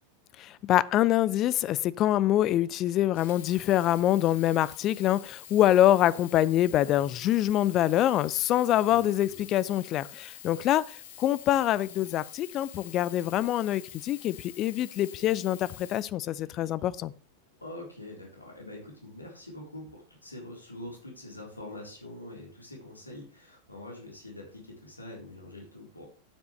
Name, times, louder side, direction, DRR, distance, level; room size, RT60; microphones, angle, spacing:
voice 1, 0.4-17.1, left 13 dB, 35° left, 0.5 m, -25 dB
Sink (filling or washing), 3.0-16.8 17.5-17.6, left 11 dB, 55° left, 1.3 m, -47 dB
voice 2, 6.8-7.3 8.8-9.5 10.5-10.6 15.0-15.1 17.6-26.1, left 1 dB, 85° left, 3.7 m, -45 dB
12.0 x 9.4 x 3.3 m
figure-of-eight pair, 90°, 0 cm